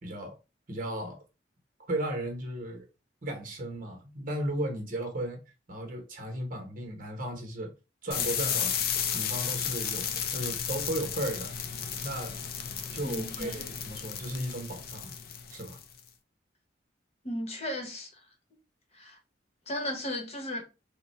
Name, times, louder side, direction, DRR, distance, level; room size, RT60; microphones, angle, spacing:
voice 1, 0.0-0.4 0.7-1.2 1.9-2.8 3.2-5.4 5.7-7.7 8.0-8.8 9.1-11.5 12.0-12.3 12.9-15.1 15.5-15.8, right 1 dB, 50° right, 1.1 m, -35 dB
sound 1, 8.1-16.0, left 8 dB, 55° left, 0.5 m, -33 dB
voice 2, 13.0-13.7 17.2-18.2 18.9-19.2 19.7-20.6, left 1 dB, 35° left, 1.0 m, -35 dB
3.8 x 2.2 x 4.2 m
head